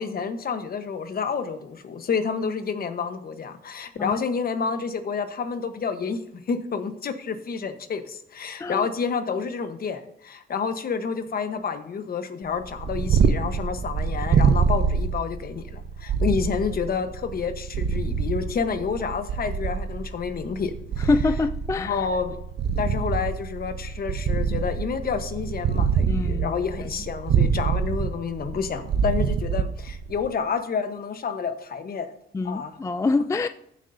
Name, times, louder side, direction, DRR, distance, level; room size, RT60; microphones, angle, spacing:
voice 1, 0.0-6.2 6.5-21.1 21.8-22.4 22.8-32.1 32.4-32.8, left 6 dB, 50° left, 1.1 m, -29 dB
Purr, 12.6-30.3, right 6 dB, 60° right, 0.8 m, -25 dB
voice 2, 21.1-22.0 26.1-26.6 32.3-33.5, left 3 dB, 15° left, 0.3 m, -25 dB
14.0 x 7.7 x 2.7 m
cardioid pair, 90°, 20 cm